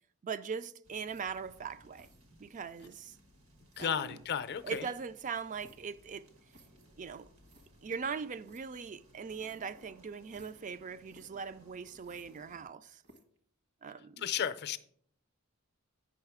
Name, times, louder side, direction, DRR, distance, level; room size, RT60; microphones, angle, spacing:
voice 1, 0.2-2.1 2.4-3.2 3.8-4.2 4.6-6.3 7.0-7.3 7.8-13.0 13.8-14.3, right 6 dB, 35° right, 0.4 m, -40 dB
sound 1, 0.8-12.6, equal, 75° right, 1.6 m, -62 dB
sound 2, 1.0-1.5 1.9-2.2 2.7-3.2 3.7-4.1 4.6-5.9 6.5-6.9 7.2-7.3 7.4-7.7 8.4-8.6 9.4-9.7 10.2-10.7 11.0-11.3 12.0-12.7 13.0-13.4, right 2 dB, 55° right, 1.3 m, -61 dB
voice 2, 3.8-4.9 14.2-14.8, left 8 dB, 50° left, 0.5 m, -34 dB
8.9 x 5.7 x 4.8 m
head